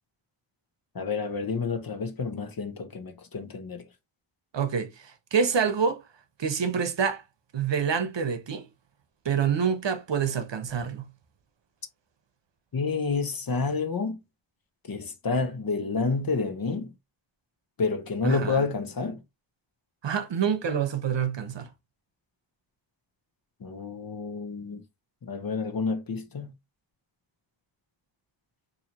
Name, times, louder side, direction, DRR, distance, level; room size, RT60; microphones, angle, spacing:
voice 1, 0.9-3.8 12.7-14.2 14.9-16.9 17.8-19.2 23.6-24.8 25.2-26.5, left 4 dB, 45° left, 0.8 m, -29 dB
voice 2, 4.5-6.0 6.4-7.2 7.5-8.7 9.2-11.0 18.2-18.7 20.0-21.7, right 7 dB, 60° right, 0.8 m, -27 dB
4.2 x 2.8 x 2.8 m
wide cardioid pair, 85°, 48 cm